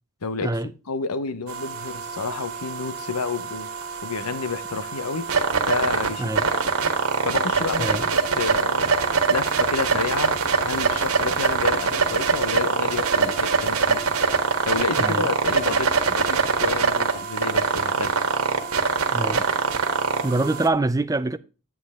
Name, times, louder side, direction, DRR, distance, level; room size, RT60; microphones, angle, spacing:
voice 1, 0.2-3.7 4.0-5.3 5.7-6.3 7.2-8.0 8.3-8.9 9.3-14.0 14.6-18.1, left 4 dB, 85° left, 0.9 m, -30 dB
sound 1, 1.5-20.7, right 5 dB, 75° right, 1.6 m, -24 dB
voice 2, 15.0-15.3 19.1-19.5 20.2-21.4, right 2 dB, 15° right, 0.5 m, -24 dB
9.6 x 8.7 x 3.5 m
head